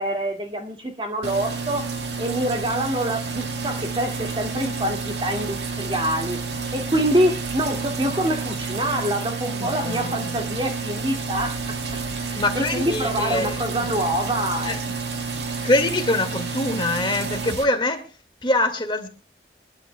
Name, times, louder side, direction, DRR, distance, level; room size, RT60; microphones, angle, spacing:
voice 1, 0.0-1.9 2.2-6.4 6.7-11.7 12.3-14.8, right 1 dB, 30° right, 2.2 m, -25 dB
sound 1, 1.2-17.6, right 4 dB, 85° right, 1.8 m, -30 dB
voice 2, 9.5-10.4 12.4-13.9 14.7-14.8 15.6-18.1 18.4-19.1, left 2 dB, 30° left, 2.0 m, -24 dB
24.5 x 12.0 x 2.3 m
head